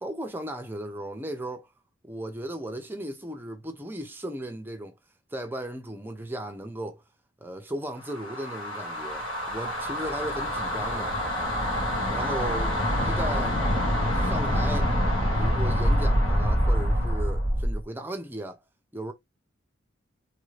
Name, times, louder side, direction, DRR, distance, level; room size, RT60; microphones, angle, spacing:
voice 1, 0.0-1.7 2.0-4.9 5.3-7.0 7.4-11.2 12.1-12.7 13.0-13.6 14.1-14.9 15.4-18.6 18.9-19.1, right 1 dB, 10° right, 0.5 m, -36 dB
sound 1, 8.1-17.8, equal, 85° left, 1.4 m, -26 dB
3.2 x 2.6 x 3.1 m
head